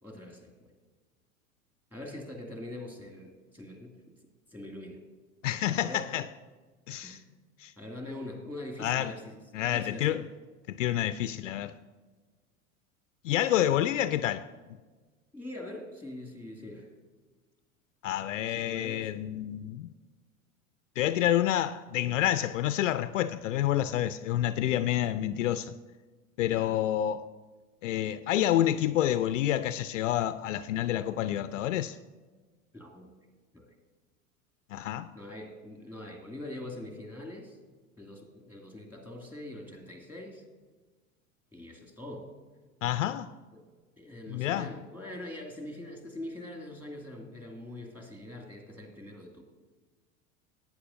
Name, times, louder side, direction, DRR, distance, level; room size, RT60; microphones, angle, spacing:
voice 1, 0.0-0.7 1.9-3.9 4.5-5.0 5.8-6.1 7.0-7.2 7.8-9.4 9.6-10.2 15.3-16.9 18.5-19.1 26.5-26.8 32.7-33.1 33.5-33.7 35.1-37.6 38.0-40.4 41.5-42.3 43.5-43.6 44.0-49.4, left 1 dB, 5° right, 2.3 m, -43 dB
voice 2, 5.4-6.2 6.9-7.2 7.6-7.7 8.8-9.1 9.5-10.2 10.7-11.8 13.2-14.5 18.0-19.9 21.0-25.8 26.4-27.3 27.8-32.0 34.7-35.1 42.8-43.3 44.3-44.7, left 12 dB, 60° left, 0.5 m, -28 dB
17.5 x 9.2 x 2.6 m
figure-of-eight pair, 80°, 42 cm